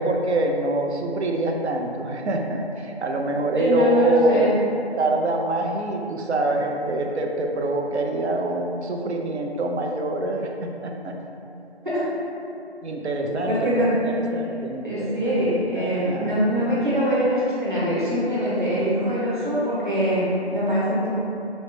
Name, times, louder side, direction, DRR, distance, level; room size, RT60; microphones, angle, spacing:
voice 1, 0.0-4.5 5.0-11.2 12.8-16.4, right 2 dB, 90° right, 2 dB, 0.5 m, -25 dB
voice 2, 3.6-4.5 11.8-12.0 13.4-13.9 14.8-21.1, equal, 50° right, -8 dB, 0.9 m, -23 dB
3.0 x 2.0 x 3.1 m, 2.7 s
figure-of-eight pair, 175°, 33 cm